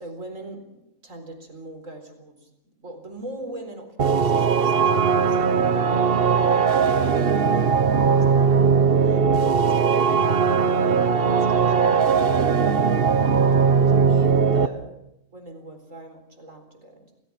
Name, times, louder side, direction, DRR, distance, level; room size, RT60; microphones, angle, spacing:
voice 1, 0.0-2.5 2.8-7.7 8.1-15.0 15.3-17.1, right 1 dB, 90° right, 6 dB, 4.6 m, -42 dB
sound 1, 4.0-14.7, right 6 dB, 50° right, 1.1 m, -19 dB
28.5 x 19.0 x 6.0 m, 0.84 s
omnidirectional pair, 1.3 m